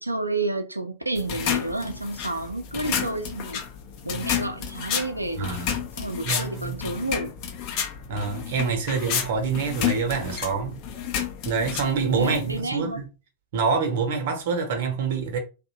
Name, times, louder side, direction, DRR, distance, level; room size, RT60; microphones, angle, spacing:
voice 1, 0.0-3.6 4.0-5.6 6.0-7.3 12.1-13.0, right 2 dB, 85° right, 0.4 m, -30 dB
sound 1, 1.1-12.6, left 8 dB, 45° left, 0.5 m, -31 dB
voice 2, 5.4-5.8 6.2-6.8 8.1-10.8 11.4-13.1 13.5-15.4, right 5 dB, 55° right, 0.7 m, -26 dB
2.6 x 2.1 x 2.7 m
figure-of-eight pair, 90°, 0 cm